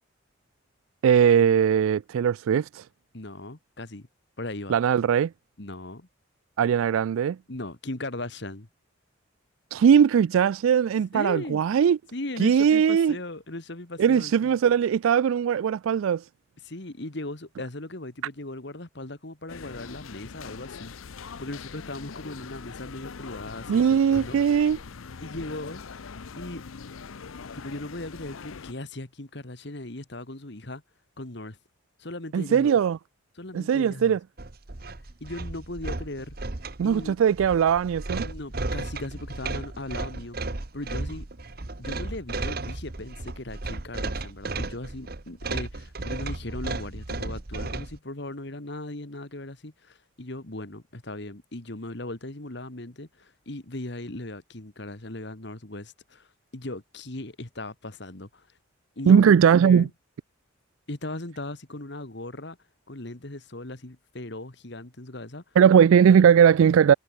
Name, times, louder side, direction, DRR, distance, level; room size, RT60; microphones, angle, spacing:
voice 1, 1.0-2.8 4.7-5.3 6.6-7.4 9.7-12.0 12.4-13.1 14.0-16.2 23.7-24.8 32.3-33.0 33.5-34.2 36.8-38.3 59.1-59.9 65.6-66.9, right 8 dB, 80° right, 0.3 m, -19 dB
voice 2, 3.1-4.1 4.4-4.8 5.6-6.1 7.5-8.7 11.1-11.6 12.1-14.5 16.6-24.4 25.2-26.0 26.4-26.6 27.5-30.8 31.2-31.6 32.0-32.7 33.4-34.2 35.2-36.4 36.8-37.2 38.2-41.3 41.8-58.5 59.0-59.4 59.6-59.9 60.9-62.6 62.9-65.4, left 2 dB, 55° left, 1.9 m, -38 dB
sound 1, 19.5-28.7, left 5 dB, 80° left, 0.7 m, -42 dB
sound 2, 34.4-48.0, right 2 dB, 45° right, 1.2 m, -34 dB
head